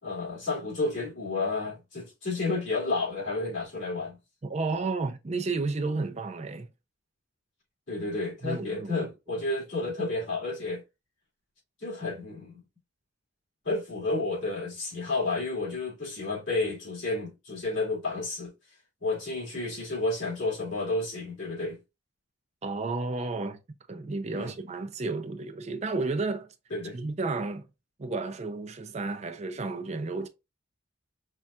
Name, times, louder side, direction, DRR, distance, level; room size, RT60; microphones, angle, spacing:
voice 1, 0.0-4.2 7.9-10.8 11.8-12.6 13.6-18.5 19.0-21.8 24.3-24.5 26.7-27.0, left 2 dB, 70° left, 2.4 m, -31 dB
voice 2, 4.4-6.7 8.4-9.1 22.6-23.6 23.9-26.5 26.9-27.7 28.0-30.3, right 3 dB, 35° right, 0.4 m, -32 dB
5.4 x 2.3 x 2.3 m
head